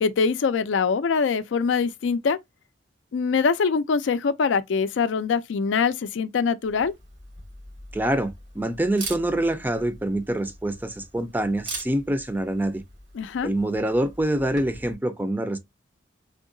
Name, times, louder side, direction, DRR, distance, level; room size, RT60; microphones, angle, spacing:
voice 1, 0.0-2.4 3.1-6.9 13.1-13.5, left 5 dB, 75° left, 0.4 m, -23 dB
Camera, 6.6-14.9, right 3 dB, 85° right, 1.8 m, -42 dB
voice 2, 7.9-12.8 13.4-15.6, right 1 dB, 10° right, 0.4 m, -25 dB
3.6 x 2.7 x 2.5 m
head